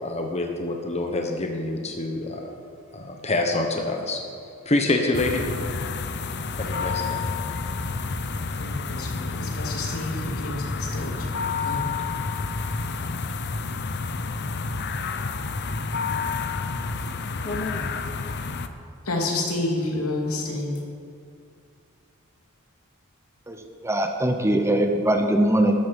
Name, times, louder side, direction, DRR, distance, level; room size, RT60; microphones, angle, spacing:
voice 1, 0.0-2.5 2.9-4.2 4.6-5.4 6.6-7.2 17.4-17.9, left 2 dB, 30° left, 3 dB, 1.2 m, -26 dB
sound 1, 5.1-18.7, left 4 dB, 55° left, 0.7 m, -29 dB
voice 2, 8.6-11.3 11.6-11.9 19.0-20.8, left 2 dB, 85° left, 0 dB, 2.7 m, -29 dB
voice 3, 23.8-25.7, right 1 dB, 15° right, 5 dB, 0.9 m, -21 dB
13.5 x 12.5 x 5.3 m, 2.4 s
head